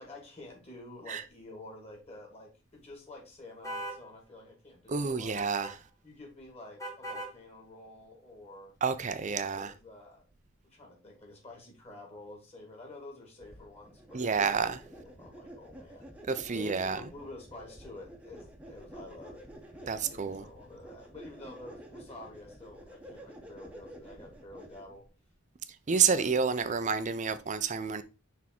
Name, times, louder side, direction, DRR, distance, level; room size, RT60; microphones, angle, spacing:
voice 1, 0.0-5.4 6.0-8.7 9.3-10.2 10.6-16.1 16.5-19.5 19.8-25.0, left 2 dB, 30° left, 2.5 m, -49 dB
sound 1, 3.6-4.0 5.4-5.7 6.8-7.3, right 1 dB, 15° left, 1.2 m, -39 dB
voice 2, 4.9-5.8 8.8-9.7 14.1-14.8 16.3-17.0 19.9-20.4 25.9-28.0, right 5 dB, 35° right, 0.5 m, -29 dB
sound 2, 13.4-25.1, right 1 dB, 5° right, 0.9 m, -50 dB
6.1 x 3.6 x 4.4 m
head